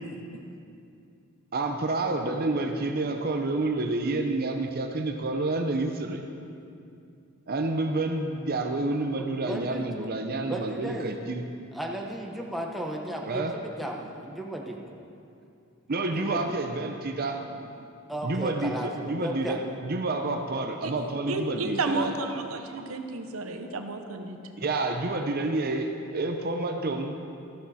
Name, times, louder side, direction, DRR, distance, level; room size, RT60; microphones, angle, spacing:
voice 1, 1.5-6.3 7.5-11.4 13.3-13.5 15.9-17.7 18.2-22.1 22.7-22.8 24.6-27.1, right 2 dB, 45° right, 5 dB, 0.7 m, -29 dB
voice 2, 9.1-10.1 10.4-11.1 11.7-14.8 16.1-16.5 18.1-19.6, right 1 dB, ahead, -1 dB, 1.0 m, -35 dB
voice 3, 21.3-24.4, right 3 dB, 85° right, 6 dB, 0.9 m, -32 dB
13.5 x 12.0 x 4.2 m, 2.5 s
head